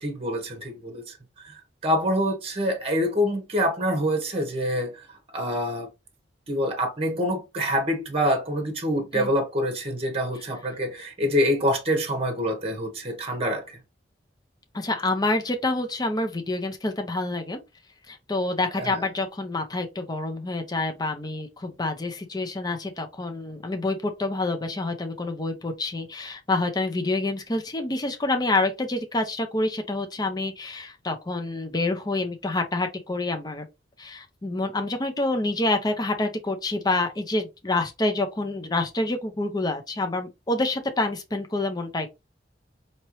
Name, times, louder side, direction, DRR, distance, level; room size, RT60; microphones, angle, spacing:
voice 1, 0.0-5.1 5.3-5.9 6.5-13.8 18.8-19.0, equal, 35° right, 1.1 m, -26 dB
voice 2, 14.7-17.6 18.1-33.7 34.0-42.1, left 2 dB, 20° left, 0.6 m, -27 dB
4.3 x 2.9 x 3.0 m
head